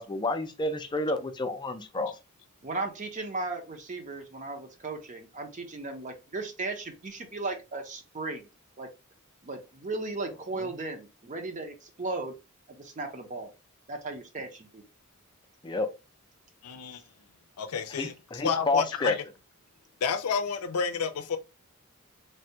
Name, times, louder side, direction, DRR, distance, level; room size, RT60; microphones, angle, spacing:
voice 1, 0.0-2.2 15.6-15.9 17.9-19.2, left 2 dB, 20° left, 0.4 m, -29 dB
voice 2, 2.6-8.5 8.8-8.9 9.4-12.3 12.7-13.5 13.9-14.8, right 3 dB, 35° right, 0.6 m, -36 dB
voice 3, 16.6-17.0 17.6-19.2 20.0-21.4, left 6 dB, 90° left, 0.5 m, -30 dB
3.3 x 2.3 x 2.8 m
head